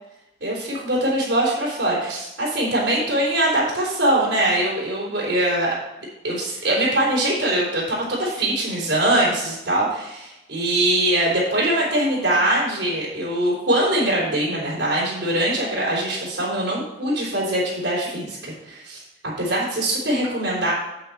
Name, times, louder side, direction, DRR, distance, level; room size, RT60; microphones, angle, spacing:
voice 1, 0.4-5.7 6.2-19.0 19.4-20.7, right 1 dB, 75° right, -6 dB, 3.9 m, -22 dB
8.6 x 8.4 x 4.3 m, 0.94 s
head